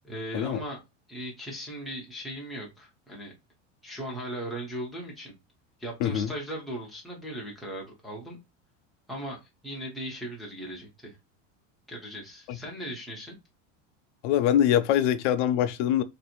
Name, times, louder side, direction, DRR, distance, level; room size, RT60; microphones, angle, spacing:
voice 1, 0.0-0.8 1.1-3.3 3.8-5.3 5.8-8.4 9.1-11.2 11.9-13.4, right 1 dB, ahead, 0.4 m, -38 dB
voice 2, 6.0-6.3 12.5-12.6 14.2-16.0, left 10 dB, 65° left, 0.5 m, -23 dB
2.6 x 2.5 x 4.2 m
cardioid pair, 180°, 39 cm